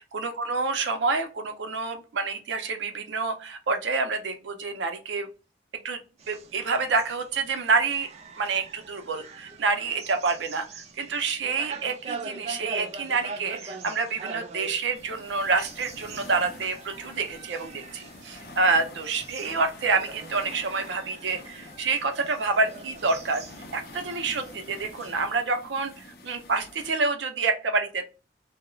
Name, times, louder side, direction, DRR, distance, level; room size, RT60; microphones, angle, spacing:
voice 1, 0.1-5.3 5.8-6.0 6.3-8.1 8.4-23.4 23.7-28.0, right 4 dB, 90° right, 7 dB, 0.5 m, -28 dB
sound 1, 6.2-25.2, right 4 dB, 35° right, 0.3 m, -43 dB
sound 2, 14.9-26.9, left 2 dB, 55° left, 0.5 m, -47 dB
2.3 x 2.0 x 3.0 m, 0.33 s
head